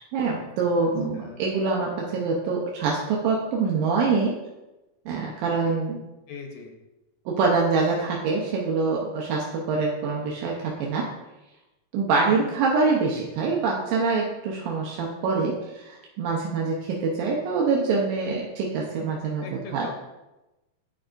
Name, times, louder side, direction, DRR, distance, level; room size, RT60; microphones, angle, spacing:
voice 1, 0.0-4.3 5.1-6.0 7.3-11.1 11.9-19.5 19.7-19.9, right 4 dB, 90° right, -2 dB, 2.6 m, -25 dB
voice 2, 6.3-6.7 12.3-12.6 19.4-19.9, left 4 dB, 85° left, 3 dB, 2.6 m, -40 dB
10.5 x 4.8 x 2.6 m, 1.0 s
omnidirectional pair, 3.9 m